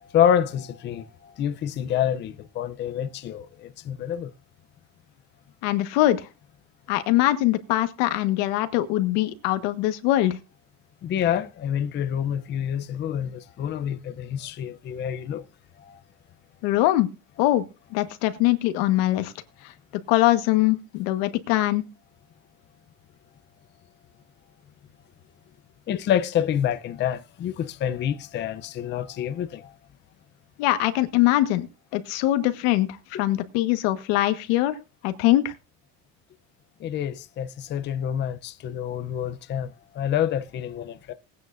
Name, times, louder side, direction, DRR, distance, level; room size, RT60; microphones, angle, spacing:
voice 1, 0.0-4.3 11.0-15.4 15.8-16.0 25.9-29.7 36.8-41.1, left 9 dB, 35° left, 0.7 m, -27 dB
voice 2, 5.6-6.3 6.9-10.4 16.6-17.1 17.4-17.6 17.9-19.3 19.6-19.7 20.1-21.8 30.6-31.7 31.9-34.8 35.0-35.5, left 15 dB, 85° left, 1.5 m, -22 dB
19.5 x 9.4 x 2.6 m
cardioid pair, 150°, 32 cm